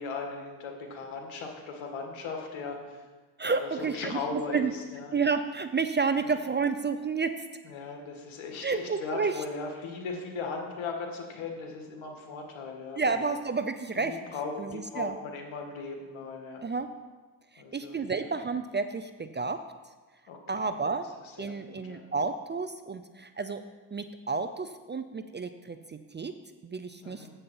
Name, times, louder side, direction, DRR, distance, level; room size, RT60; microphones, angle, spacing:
voice 1, 0.0-3.1 3.4-5.1 6.2-6.4 7.6-13.2 14.0-16.6 17.6-18.3 20.3-20.8 21.2-22.0 27.0-27.3, left 4 dB, 75° left, 2 dB, 2.0 m, -38 dB
voice 2, 3.4-4.7 5.1-7.3 8.6-9.3 13.0-14.2 14.6-15.1 16.6-16.9 17.5-19.6 20.5-21.1 21.4-23.6 23.9-26.3 26.6-27.3, right 4 dB, 25° right, 9 dB, 0.5 m, -30 dB
7.8 x 5.6 x 7.6 m, 1.3 s
supercardioid pair, 70°, 48 cm